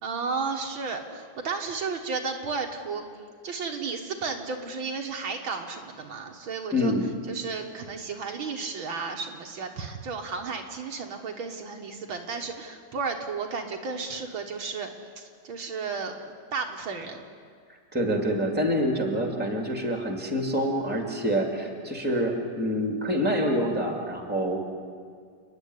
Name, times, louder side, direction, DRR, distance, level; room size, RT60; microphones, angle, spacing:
voice 1, 0.0-3.1 3.4-6.9 7.3-14.9 15.2-17.2, right 4 dB, 65° right, 3 dB, 2.2 m, -33 dB
voice 2, 6.7-7.1 17.9-24.6, equal, 5° right, 3 dB, 2.4 m, -26 dB
29.5 x 10.5 x 9.7 m, 2.1 s
omnidirectional pair, 2.4 m